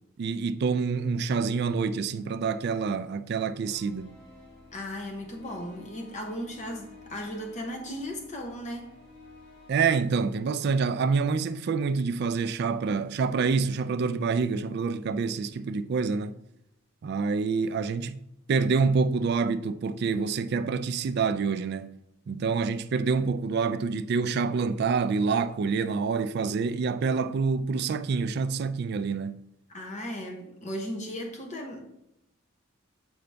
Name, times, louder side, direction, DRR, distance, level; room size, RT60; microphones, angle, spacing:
voice 1, 0.2-4.1 9.7-16.4 17.0-18.2 18.5-21.9 22.3-29.4, right 5 dB, 50° right, 0.3 m, -27 dB
sound 1, 3.6-9.7, left 2 dB, 60° left, 1.8 m, -52 dB
voice 2, 4.7-8.9 29.7-31.8, equal, 35° left, 0.9 m, -36 dB
7.9 x 3.8 x 3.4 m
head